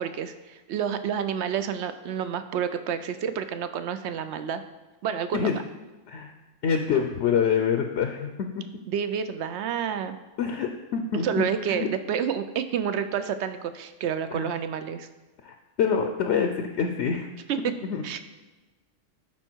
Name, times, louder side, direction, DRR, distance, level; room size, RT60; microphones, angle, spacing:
voice 1, 0.0-4.6 5.0-5.5 8.9-10.2 11.1-15.1 17.5-17.6 18.0-18.2, right 8 dB, 65° right, 10 dB, 0.8 m, -29 dB
voice 2, 6.6-8.3 8.6-8.7 10.4-11.9 14.3-14.5 15.4-17.3 17.9-18.0, left 7 dB, 65° left, 4 dB, 0.9 m, -26 dB
11.5 x 4.4 x 4.5 m, 1.2 s
omnidirectional pair, 1.4 m